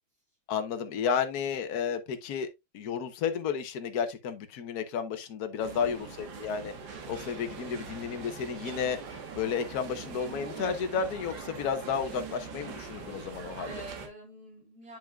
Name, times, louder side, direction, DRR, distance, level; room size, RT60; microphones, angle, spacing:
voice 1, 0.5-2.5 2.7-6.7 7.1-9.0 9.3-13.7, left 6 dB, 55° left, 1.3 m, -32 dB
voice 2, 5.6-6.4 13.7-15.0, right 1 dB, 45° right, 3.8 m, -47 dB
sound 1, 5.6-14.1, right 5 dB, 70° right, 2.0 m, -42 dB
9.2 x 5.3 x 2.3 m
omnidirectional pair, 2.3 m